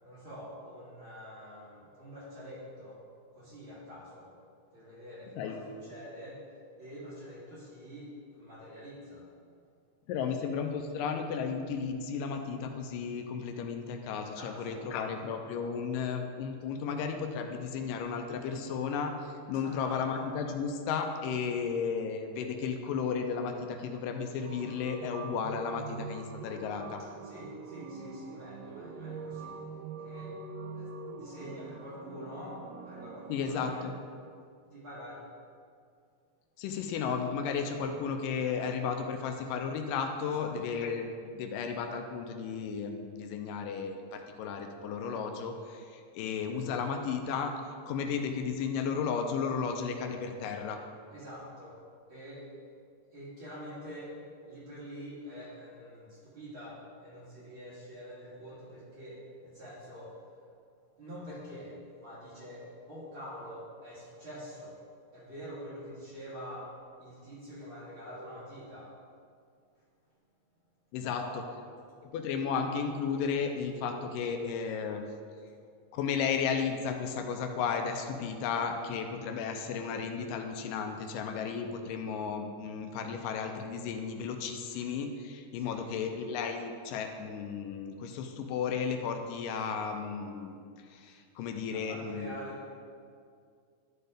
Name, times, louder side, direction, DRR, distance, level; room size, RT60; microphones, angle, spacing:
voice 1, 0.0-3.0 3.3-4.3 4.7-6.4 6.8-9.3 14.3-15.2 19.5-20.0 27.0-29.6 30.0-30.3 30.7-33.9 34.7-35.3 40.2-40.5 51.1-51.8 52.1-52.5 53.1-54.2 54.5-60.1 61.0-64.8 65.1-66.7 67.0-69.0 71.0-71.3 85.5-86.0 91.7-92.7, equal, 40° right, -11 dB, 2.8 m, -46 dB
voice 2, 10.1-27.0 33.3-33.9 36.6-47.5 47.9-50.8 70.9-71.2 72.0-75.0 75.9-92.3, left 6 dB, 90° left, 5 dB, 2.3 m, -34 dB
sound 1, 24.4-34.0, right 4 dB, 90° right, 2.4 m, -44 dB
11.5 x 4.5 x 5.0 m, 2.2 s
omnidirectional pair, 3.8 m